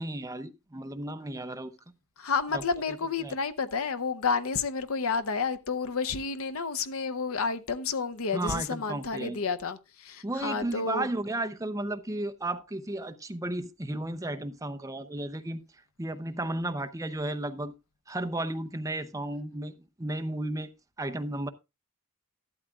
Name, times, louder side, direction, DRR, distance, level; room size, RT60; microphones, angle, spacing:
voice 1, 0.0-1.7 2.5-2.6 3.2-3.4 8.3-9.4 10.2-15.6 16.0-17.7 18.1-20.7 21.0-21.5, right 1 dB, 15° right, 0.6 m, -33 dB
voice 2, 2.2-11.1, left 5 dB, 70° left, 0.7 m, -30 dB
13.5 x 12.0 x 2.4 m
head